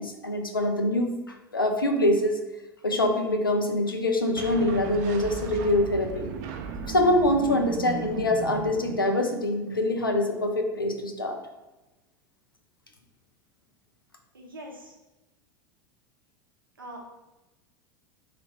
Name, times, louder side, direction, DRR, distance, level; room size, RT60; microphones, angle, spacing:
voice 1, 0.0-2.4 2.8-6.3 6.9-11.4, left 1 dB, 90° left, 4 dB, 0.4 m, -25 dB
sound 1, 4.4-9.5, right 6 dB, 50° right, 0.4 m, -36 dB
voice 2, 14.3-14.9 16.8-17.0, right 1 dB, 85° right, -1 dB, 0.7 m, -42 dB
3.1 x 2.4 x 3.3 m, 1.0 s
figure-of-eight pair, 80°, 11 cm